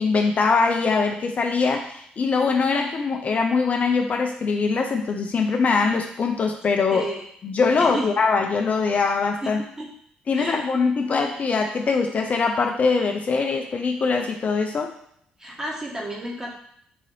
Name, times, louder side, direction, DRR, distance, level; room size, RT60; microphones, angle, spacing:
voice 1, 0.0-7.1 7.4-9.6 10.3-14.9, left 4 dB, 50° left, 3 dB, 0.5 m, -22 dB
voice 2, 6.9-7.3 7.7-8.1 9.4-9.9 10.3-10.7 15.4-16.5, right 1 dB, 15° right, -2 dB, 1.2 m, -32 dB
3.8 x 2.6 x 3.2 m, 0.67 s
supercardioid pair, 55°, 3 cm